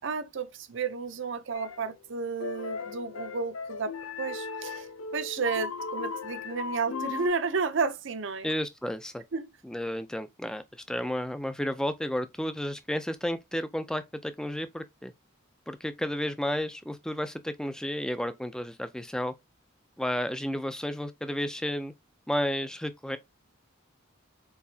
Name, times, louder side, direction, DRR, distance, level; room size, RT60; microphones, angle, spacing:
voice 1, 0.0-3.9 4.2-4.9 5.1-8.5 9.3-9.5, right 4 dB, 60° right, 0.6 m, -32 dB
sound 1, 1.5-1.9 2.4-7.3, left 4 dB, 85° left, 0.6 m, -37 dB
voice 2, 8.4-9.2 9.6-15.1 15.7-19.3 20.0-21.9 22.3-23.2, equal, 5° left, 0.4 m, -32 dB
4.6 x 4.1 x 2.7 m
head